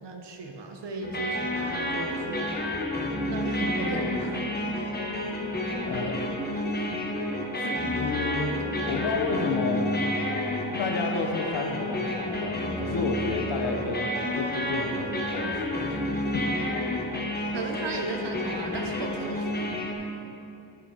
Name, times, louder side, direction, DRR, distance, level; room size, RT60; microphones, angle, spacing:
voice 1, 0.0-2.5 3.3-4.4 17.5-19.5 19.9-20.1, right 3 dB, 75° right, 3 dB, 1.0 m, -35 dB
sound 1, 1.0-19.9, left 1 dB, 25° left, 0.8 m, -30 dB
Musical instrument, 3.3-16.7, right 2 dB, 20° right, 0.5 m, -42 dB
voice 2, 5.8-6.4 7.6-8.5 8.9-9.9 10.8-16.0 16.3-16.8, left 4 dB, 65° left, 3 dB, 0.9 m, -31 dB
9.2 x 6.4 x 4.5 m, 2.7 s
wide cardioid pair, 175°, 42 cm